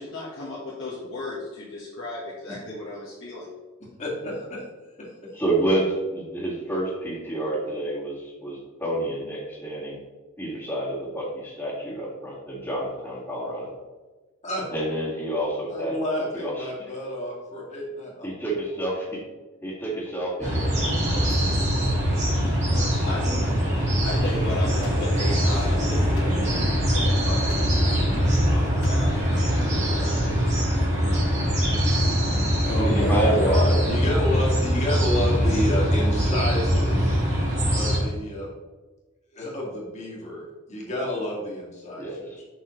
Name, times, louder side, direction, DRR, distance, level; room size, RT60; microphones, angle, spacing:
voice 1, 0.0-3.5 23.0-23.2 24.0-30.4, left 2 dB, 55° left, -8 dB, 1.6 m, -36 dB
voice 2, 4.0-4.6 4.9-5.1 14.4-14.6 15.7-18.5 21.7-21.9 22.2-22.8 23.1-23.6 31.4-31.7 32.6-37.2 37.7-38.5 39.3-42.4, left 1 dB, 30° left, -5 dB, 2.1 m, -30 dB
voice 3, 5.3-10.0 10.4-13.7 14.7-16.0 16.3-16.6 18.2-19.2 19.6-21.4 32.8-33.8 42.0-42.4, right 1 dB, 10° left, -11 dB, 2.0 m, -28 dB
sound 1, 20.4-38.0, equal, 35° right, 2.2 m, -22 dB
sound 2, 24.2-29.5, left 1 dB, 80° left, 1.7 m, -41 dB
7.1 x 6.0 x 3.2 m, 1.2 s
head